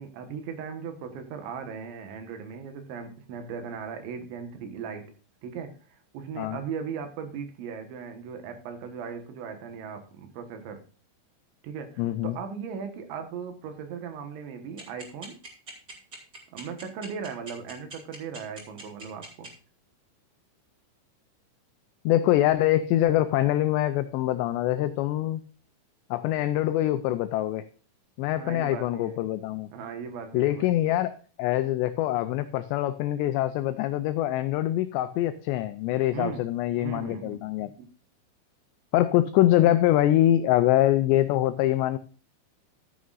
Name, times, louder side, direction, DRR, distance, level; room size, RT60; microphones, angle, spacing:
voice 1, 0.0-5.1 5.4-10.8 11.6-15.4 16.5-19.5 28.4-29.2 29.7-30.7 36.1-36.4 36.8-37.4 37.8-37.9, right 6 dB, 75° right, 6 dB, 3.5 m, -38 dB
voice 2, 12.0-12.4 22.1-25.4 26.1-27.7 28.2-29.7 30.3-31.1 31.4-37.7 38.9-42.0, left 14 dB, 90° left, 11 dB, 2.4 m, -24 dB
sound 1, 14.8-19.5, right 2 dB, 30° right, 1.8 m, -42 dB
13.5 x 9.4 x 2.5 m, 0.38 s
omnidirectional pair, 5.6 m